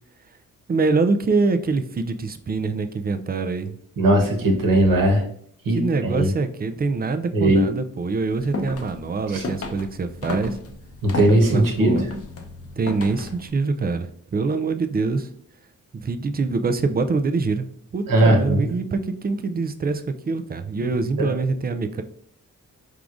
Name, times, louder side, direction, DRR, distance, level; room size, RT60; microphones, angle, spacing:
voice 1, 0.7-3.8 5.7-10.6 11.5-12.0 12.8-15.3 15.9-22.0, right 4 dB, 30° right, 9 dB, 0.4 m, -24 dB
voice 2, 4.0-5.2 5.6-6.3 7.3-7.6 9.3-9.4 11.0-12.0 18.1-18.7 21.2-21.3, right 1 dB, 70° right, 1 dB, 1.2 m, -18 dB
sound 1, 8.3-13.5, left 2 dB, 45° left, 0.7 m, -33 dB
4.7 x 3.7 x 2.5 m, 0.65 s
cardioid pair, 75°, 34 cm